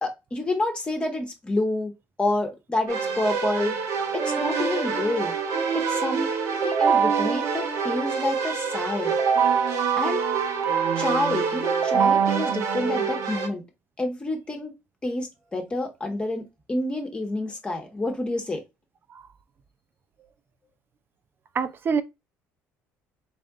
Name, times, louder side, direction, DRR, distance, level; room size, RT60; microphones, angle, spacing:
voice 1, 0.0-1.9 2.2-3.8 4.1-5.3 5.7-6.3 6.6-9.2 10.0-10.2 11.0-13.6 14.0-14.7 15.0-16.4 16.7-18.6, left 2 dB, 20° left, 1.3 m, -28 dB
Keyboard (musical), 2.9-13.5, right 6 dB, 65° right, 1.1 m, -25 dB
voice 2, 21.5-22.0, right 6 dB, 40° right, 0.6 m, -25 dB
3.8 x 3.4 x 3.7 m
cardioid pair, 100°, 6 cm